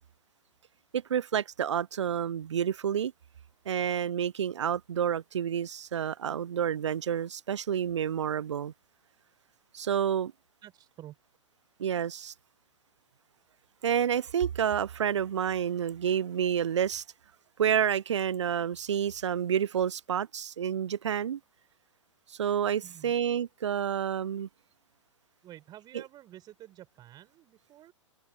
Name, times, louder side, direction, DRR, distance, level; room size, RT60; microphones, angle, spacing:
voice 1, 0.9-3.1 3.7-8.7 9.7-10.3 11.8-12.3 13.8-17.0 17.6-21.4 22.3-24.5, right 8 dB, 65° right, 0.6 m, -29 dB
voice 2, 10.6-11.2 22.8-23.1 25.4-27.9, right 13 dB, 25° right, 4.7 m, -50 dB
open air
figure-of-eight pair, 110°, 16 cm